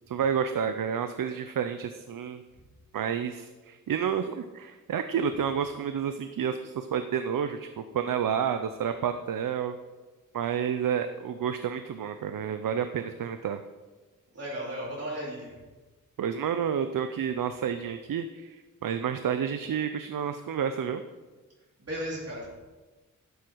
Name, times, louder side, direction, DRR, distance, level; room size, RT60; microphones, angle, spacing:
voice 1, 0.1-2.4 2.9-9.8 10.3-13.6 16.2-18.6 18.8-21.0, right 8 dB, 75° right, 9 dB, 0.6 m, -30 dB
voice 2, 14.3-15.5 21.8-22.5, equal, 45° right, -6 dB, 3.6 m, -35 dB
12.0 x 11.0 x 4.6 m, 1.2 s
wide cardioid pair, 175°, 33 cm